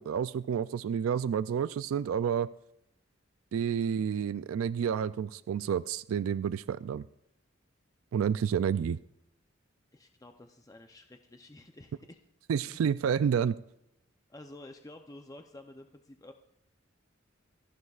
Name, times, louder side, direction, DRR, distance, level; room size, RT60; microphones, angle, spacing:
voice 1, 0.0-2.5 3.5-7.0 8.1-9.0 12.5-13.6, right 7 dB, 90° right, 16 dB, 0.3 m, -29 dB
voice 2, 9.9-12.2 12.7-12.8 14.3-16.3, left 1 dB, 15° left, 5 dB, 0.6 m, -50 dB
26.0 x 11.0 x 2.4 m, 0.82 s
head